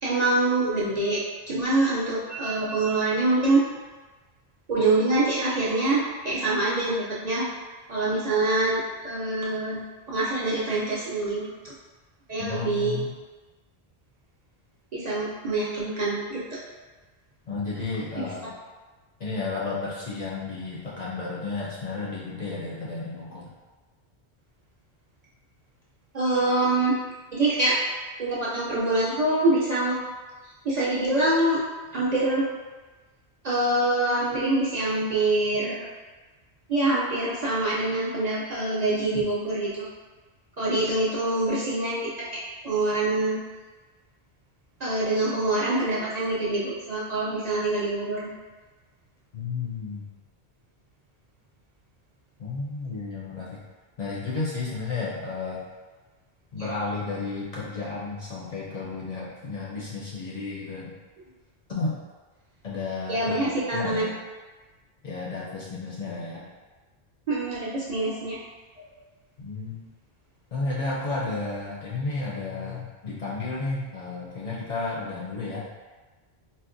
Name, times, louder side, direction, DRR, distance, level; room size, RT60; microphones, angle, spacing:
voice 1, 0.0-3.6 4.7-7.5 7.9-9.8 10.1-11.7 12.3-13.0 14.9-16.6 18.2-18.3 26.1-27.0 27.3-27.8 28.2-30.0 30.6-31.6 31.9-32.5 33.4-35.9 36.7-39.9 40.6-43.4 44.8-48.3 63.1-64.0 67.3-68.4, right 2 dB, 50° right, -8 dB, 0.5 m, -25 dB
voice 2, 12.4-13.1 17.5-18.5 19.2-23.5 49.3-50.1 52.4-53.6 54.0-55.6 56.5-60.9 61.7-62.0 62.6-64.1 65.0-66.4 69.4-69.8 70.5-75.6, left 3 dB, 50° left, -7 dB, 0.5 m, -32 dB
4.1 x 2.1 x 2.5 m, 1.3 s
omnidirectional pair, 1.1 m